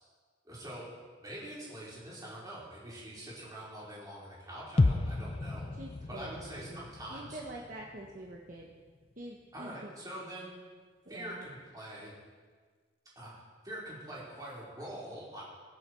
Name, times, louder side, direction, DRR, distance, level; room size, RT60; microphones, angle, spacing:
voice 1, 0.4-0.8 1.2-5.7 6.1-7.4 9.5-10.5 11.1-12.1 13.2-15.4, right 1 dB, 20° right, -7 dB, 4.4 m, -44 dB
sound 1, 4.8-8.7 9.0-9.1, left 2 dB, 30° left, 0.4 m, -33 dB
voice 2, 5.8-8.7 9.2-9.9 11.1-11.5, right 1 dB, 45° right, -1 dB, 1.2 m, -46 dB
22.0 x 7.5 x 4.7 m, 1.5 s
head